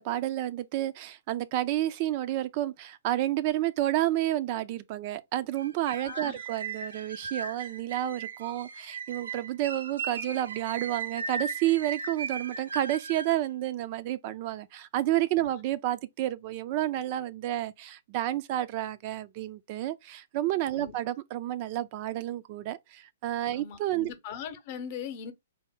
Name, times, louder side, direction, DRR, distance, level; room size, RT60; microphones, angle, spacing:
voice 1, 0.0-24.1, right 14 dB, 45° right, 0.3 m, -30 dB
sound 1, 5.6-13.4, right 5 dB, 85° right, 0.6 m, -37 dB
voice 2, 6.0-6.4 15.4-15.5 20.7-20.9 23.5-25.3, left 7 dB, 45° left, 0.8 m, -40 dB
4.0 x 2.1 x 3.7 m
hypercardioid pair, 135°, 0 cm